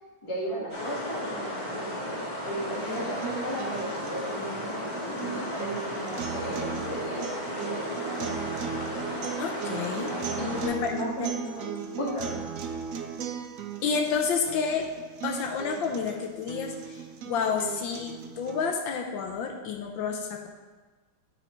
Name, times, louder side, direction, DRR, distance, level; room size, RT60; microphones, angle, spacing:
voice 1, 0.2-8.4 10.4-11.7 12.0-12.4, equal, 15° left, -4 dB, 1.4 m, -36 dB
sound 1, 0.7-10.7, equal, 35° left, 2.2 m, -34 dB
sound 2, 2.7-18.7, right 7 dB, 90° right, 0.7 m, -37 dB
voice 2, 9.4-10.2 10.6-10.9 11.2-11.3 13.8-14.9 15.2-20.5, left 5 dB, 80° left, 2 dB, 1.4 m, -30 dB
9.8 x 4.3 x 4.4 m, 1.3 s
omnidirectional pair, 2.1 m